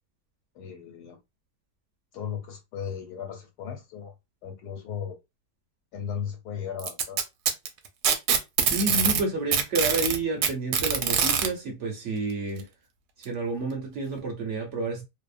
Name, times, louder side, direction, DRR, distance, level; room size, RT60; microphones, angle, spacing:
voice 1, 0.5-1.2 2.1-4.1 4.4-5.2 5.9-7.2, left 7 dB, 90° left, 1.3 m, -36 dB
Packing tape duct tape, 6.8-9.2 9.5-11.5 12.6-12.7 13.2-13.3 14.2-14.3, right 7 dB, 85° right, 1.1 m, -23 dB
voice 2, 8.6-12.7 13.2-15.0, right 2 dB, 60° right, 0.9 m, -30 dB
2.7 x 2.1 x 2.4 m
omnidirectional pair, 1.7 m